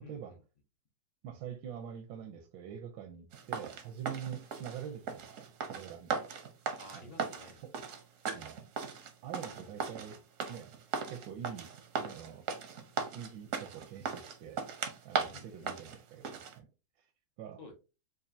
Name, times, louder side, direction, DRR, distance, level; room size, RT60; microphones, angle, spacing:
voice 1, 0.0-0.4 6.8-7.6 9.5-9.6 9.9-10.0 15.3-16.0 17.6-17.7, left 2 dB, 75° left, 1 dB, 0.3 m, -53 dB
voice 2, 1.2-6.3 6.9-7.1 7.6-7.7 8.3-8.6 9.2-10.2 10.5-10.7 11.1-11.7 12.0-12.5 13.1-14.6 15.0-16.7 17.0-17.1 17.4-17.6, right 9 dB, 80° right, 3 dB, 1.3 m, -45 dB
sound 1, 3.3-16.5, right 6 dB, 65° right, 0.8 m, -38 dB
5.3 x 2.5 x 2.6 m, 0.31 s
omnidirectional pair, 2.1 m